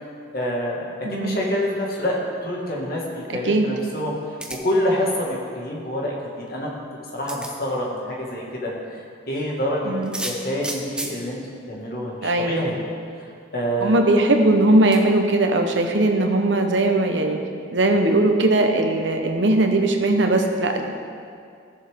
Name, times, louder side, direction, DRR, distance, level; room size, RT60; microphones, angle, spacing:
voice 1, 0.3-0.8 1.1-4.1 4.5-6.8 7.1-9.9 10.2-11.4 11.7-12.8 13.1-14.0, equal, 50° left, -3 dB, 1.9 m, -27 dB
voice 2, 1.0-1.4 3.3-3.7 9.8-10.1 12.2-12.7 13.8-17.4 17.7-20.9, right 2 dB, 75° right, 4 dB, 1.0 m, -19 dB
sound 1, 4.4-4.8 6.5-6.6 7.3-7.5 10.0-11.2 12.2-12.3 12.6-12.7 14.9-15.0, right 1 dB, 5° right, 0.6 m, -32 dB
15.5 x 7.1 x 3.7 m, 2.3 s
head